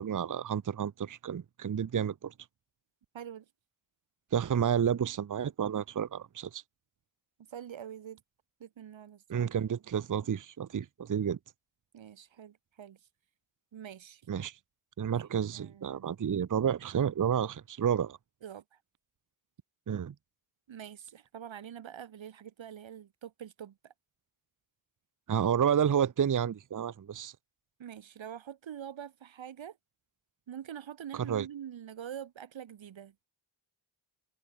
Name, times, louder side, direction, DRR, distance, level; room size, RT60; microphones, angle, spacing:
voice 1, 0.0-2.3 4.3-6.6 9.3-11.4 14.3-14.5 15.0-18.2 19.9-20.1 25.3-27.3 31.1-31.5, right 8 dB, 45° right, 0.6 m, -30 dB
voice 2, 3.1-3.5 7.5-8.2 8.6-9.4 11.9-13.0 13.7-14.2 15.1-16.2 18.4-18.8 20.7-23.9 27.8-29.8 30.5-33.1, right 9 dB, 80° right, 0.8 m, -45 dB
wide cardioid pair, 70°, 46 cm